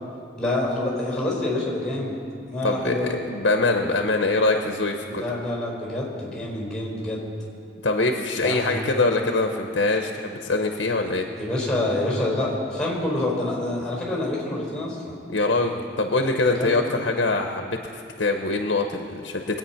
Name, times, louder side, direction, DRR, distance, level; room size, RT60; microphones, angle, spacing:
voice 1, 0.4-2.2 2.5-3.2 5.0-7.3 8.4-8.8 11.3-15.2 16.5-16.8, left 1 dB, 5° left, -3 dB, 4.2 m, -27 dB
voice 2, 2.6-5.2 7.8-11.3 15.3-19.6, left 3 dB, 70° left, 4 dB, 0.9 m, -23 dB
22.0 x 8.9 x 5.8 m, 2.4 s
head